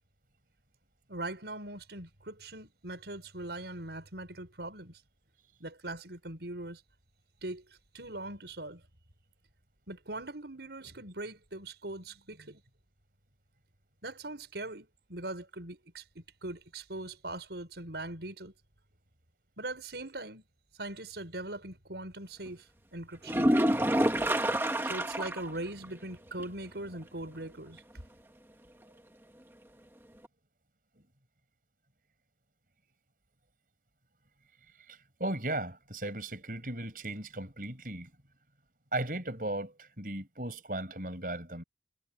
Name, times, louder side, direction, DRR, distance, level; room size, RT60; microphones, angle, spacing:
voice 1, 1.1-5.0 5.6-6.8 7.4-8.8 9.9-12.6 14.0-18.5 19.6-20.4 20.8-23.8 24.8-27.8, right 2 dB, 75° right, 5.6 m, -41 dB
sound 1, 23.2-25.5 25.8-25.9 26.4-26.5 30.2-30.3, right 1 dB, 15° right, 1.4 m, -27 dB
voice 2, 34.9-38.1 38.9-41.6, right 1 dB, 50° right, 6.5 m, -36 dB
head